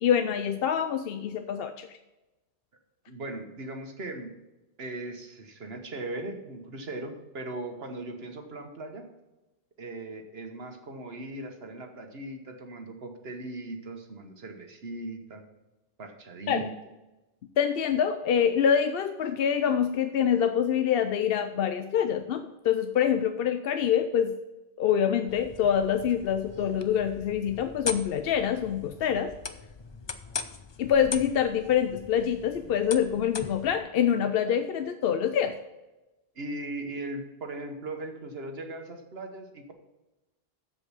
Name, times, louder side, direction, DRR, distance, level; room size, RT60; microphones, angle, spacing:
voice 1, 0.0-2.0 16.5-16.7 17.6-24.3 24.8-29.3 30.8-35.6, left 8 dB, 70° left, 8 dB, 0.8 m, -25 dB
voice 2, 3.1-4.3 4.8-9.0 9.8-15.4 16.0-16.7 36.3-39.7, right 2 dB, 75° right, 5 dB, 1.4 m, -38 dB
sound 1, 25.3-33.8, left 5 dB, 35° left, 0.4 m, -40 dB
7.6 x 7.4 x 5.5 m, 1.0 s
omnidirectional pair, 1.1 m